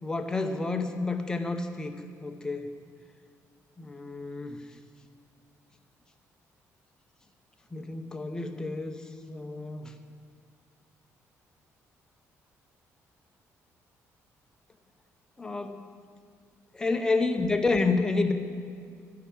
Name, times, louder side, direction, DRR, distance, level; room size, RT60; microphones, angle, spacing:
voice 1, 0.0-2.0 2.2-2.7 3.8-4.6 7.7-9.0 9.3-9.9 15.4-15.9 16.7-18.3, left 3 dB, 10° left, 6 dB, 0.7 m, -29 dB
15.0 x 5.7 x 8.5 m, 2.2 s
cardioid pair, 170°, 6 cm